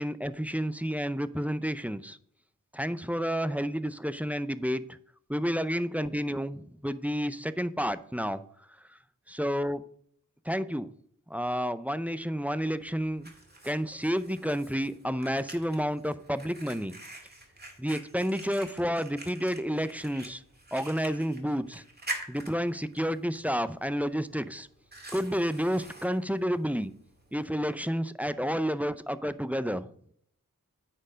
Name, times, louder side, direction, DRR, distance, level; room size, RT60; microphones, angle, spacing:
voice 1, 0.0-2.2 2.7-5.0 5.3-8.4 8.9-9.0 9.3-9.8 10.4-10.9 11.3-13.3 13.6-16.9 17.8-20.4 20.7-21.8 22.3-24.7 25.1-26.9 27.3-29.9, equal, 5° right, 13 dB, 0.5 m, -30 dB
Fire, 12.5-27.5, right 2 dB, 30° right, 2.1 m, -46 dB
9.3 x 4.5 x 6.2 m, 0.63 s
wide cardioid pair, 75°, 34 cm